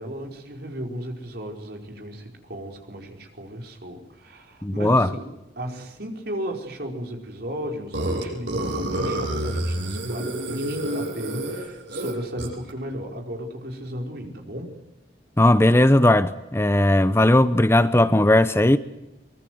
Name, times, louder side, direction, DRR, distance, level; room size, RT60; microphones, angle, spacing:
voice 1, 0.0-14.7, equal, 60° right, 5.1 m, -35 dB
voice 2, 4.6-5.1 15.4-18.8, left 1 dB, 15° left, 0.8 m, -17 dB
Burping eructation, 7.9-12.7, right 1 dB, 90° right, 7.8 m, -28 dB
24.0 x 22.5 x 7.9 m
head